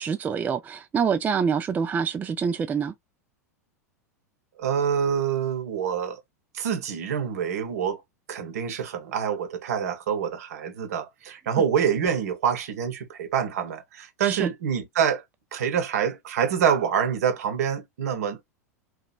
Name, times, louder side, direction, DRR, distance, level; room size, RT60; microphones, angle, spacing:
voice 1, 0.0-2.9 14.2-14.5, right 6 dB, 20° right, 0.3 m, -26 dB
voice 2, 4.6-6.2 6.5-8.0 8.3-15.2 15.5-18.4, right 8 dB, 65° right, 0.8 m, -26 dB
2.8 x 2.3 x 2.3 m
hypercardioid pair, 95°, 9 cm